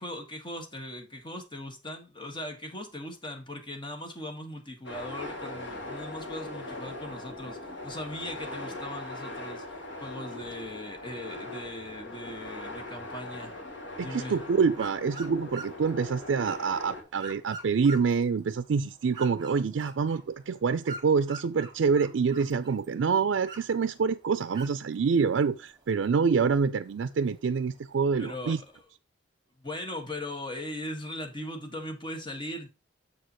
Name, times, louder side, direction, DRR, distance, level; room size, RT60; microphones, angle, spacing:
voice 1, 0.0-9.6 10.0-13.5 14.0-14.4 28.2-28.8 29.6-32.7, left 1 dB, 25° left, 1.5 m, -39 dB
sound 1, 4.9-17.0, left 2 dB, 70° left, 1.8 m, -40 dB
voice 2, 14.0-28.6, right 5 dB, 75° right, 0.4 m, -26 dB
sound 2, 14.7-28.8, right 3 dB, 25° right, 1.8 m, -48 dB
6.9 x 6.6 x 3.0 m
head